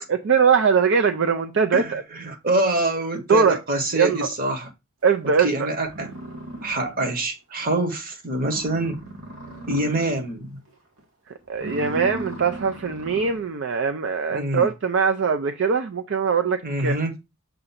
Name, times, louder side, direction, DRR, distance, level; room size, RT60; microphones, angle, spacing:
voice 1, 0.0-2.0 3.3-3.6 4.0-4.3 5.0-5.7 11.5-17.0, right 6 dB, 60° right, 0.4 m, -21 dB
voice 2, 1.7-4.7 5.4-6.1 6.6-9.0 9.7-10.6 14.3-14.7 16.6-17.1, right 1 dB, 40° right, 1.1 m, -25 dB
sound 1, 5.4-5.5 5.8-7.2 7.6-7.7 8.1-8.2 8.4-10.3 10.7-11.0 11.5-13.5, right 1 dB, 85° right, 2.0 m, -37 dB
6.8 x 2.5 x 5.6 m
head